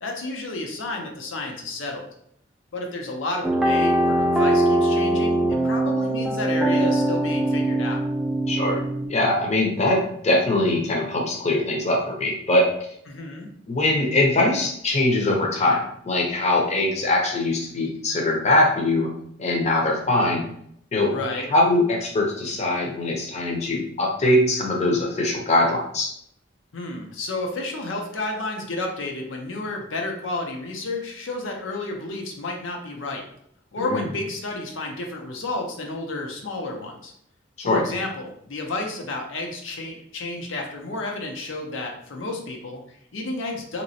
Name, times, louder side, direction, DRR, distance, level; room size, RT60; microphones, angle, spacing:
voice 1, 0.0-2.1 2.7-8.1 13.1-13.5 21.1-21.5 26.7-33.3 33.7-37.1 37.6-43.8, left 2 dB, 90° left, 1 dB, 0.6 m, -31 dB
sound 1, 3.4-9.1, right 1 dB, ahead, 0.3 m, -22 dB
voice 2, 8.5-8.8 9.1-12.7 13.7-19.1 19.4-20.5 20.9-21.1 21.5-26.1 33.8-34.0 37.6-37.8, left 2 dB, 35° left, 0 dB, 0.6 m, -22 dB
2.9 x 2.9 x 2.7 m, 0.69 s
head